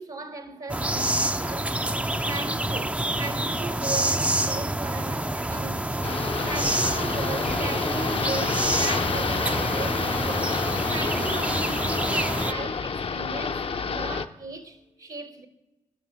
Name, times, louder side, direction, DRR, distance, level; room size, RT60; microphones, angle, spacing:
voice 1, 0.0-1.7 2.2-6.1 6.4-15.5, right 3 dB, 60° right, 1.1 m, -37 dB
sound 1, 0.7-12.5, right 1 dB, 10° right, 0.4 m, -27 dB
sound 2, 6.0-14.3, left 5 dB, 40° left, 0.6 m, -29 dB
11.0 x 6.1 x 7.6 m
supercardioid pair, 45°, 14 cm